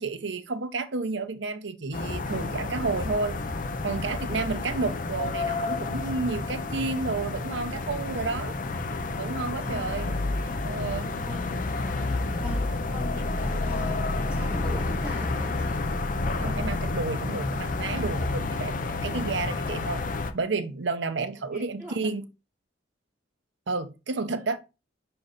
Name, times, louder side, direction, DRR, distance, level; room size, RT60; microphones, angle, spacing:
voice 1, 0.0-3.4 3.8-8.6 9.2-10.1 10.6-11.1 16.4-20.0 20.3-22.2 23.7-24.6, right 3 dB, 75° right, 0.8 m, -31 dB
sound 1, 1.9-20.3, left 3 dB, 50° left, 0.6 m, -30 dB
voice 2, 9.6-10.6 11.1-11.4 12.4-15.9 21.5-22.2, left 1 dB, 5° right, 3.5 m, -42 dB
5.4 x 4.4 x 5.0 m
head